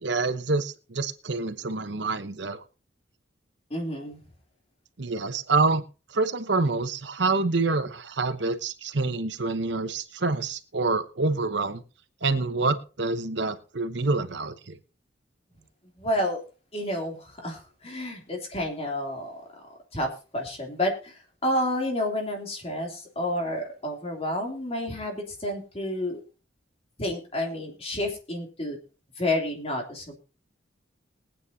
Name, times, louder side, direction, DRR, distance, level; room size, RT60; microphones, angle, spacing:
voice 1, 0.0-2.6 5.0-5.8 6.1-11.8 12.2-14.7, right 3 dB, 65° right, 10 dB, 1.0 m, -27 dB
voice 2, 3.7-4.2 16.0-16.4 16.7-19.4 19.9-26.2 27.0-28.8 29.2-30.2, left 1 dB, 30° left, 1 dB, 3.1 m, -30 dB
21.5 x 9.0 x 2.8 m, 0.34 s
head